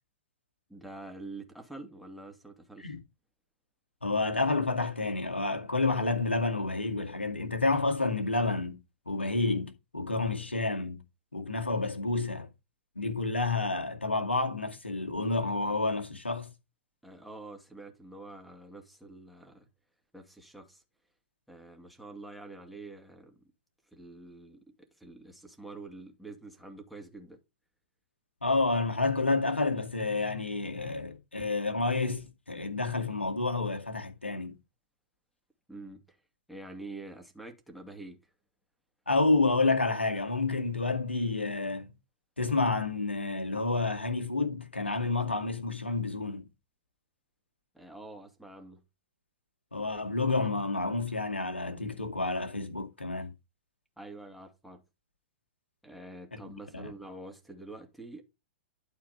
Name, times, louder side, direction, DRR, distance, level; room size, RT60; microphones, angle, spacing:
voice 1, 0.7-3.0 17.0-19.7 20.1-20.8 21.5-23.4 23.9-27.4 35.7-36.2 36.5-38.2 47.7-48.8 54.0-54.8 55.8-58.2, right 2 dB, ahead, 2.4 m, -46 dB
voice 2, 4.0-8.8 9.1-11.0 11.3-12.5 13.0-16.5 28.4-34.6 39.1-41.9 42.4-46.4 49.7-53.3 56.3-56.9, left 3 dB, 90° left, 2.2 m, -29 dB
11.5 x 4.7 x 5.1 m
figure-of-eight pair, 110°, 6 cm